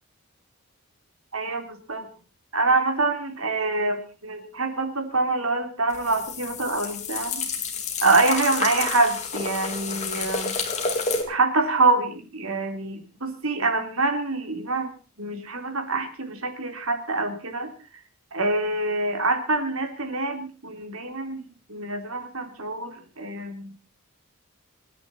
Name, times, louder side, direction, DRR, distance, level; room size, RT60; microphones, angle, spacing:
voice 1, 1.3-2.1 2.5-7.4 8.0-10.5 11.3-14.9 15.2-17.7 18.3-21.4 21.7-23.7, right 3 dB, 65° right, 6 dB, 3.7 m, -25 dB
sound 1, 5.9-11.2, left 4 dB, 30° left, 4.0 m, -29 dB
28.0 x 10.5 x 4.4 m, 0.37 s
head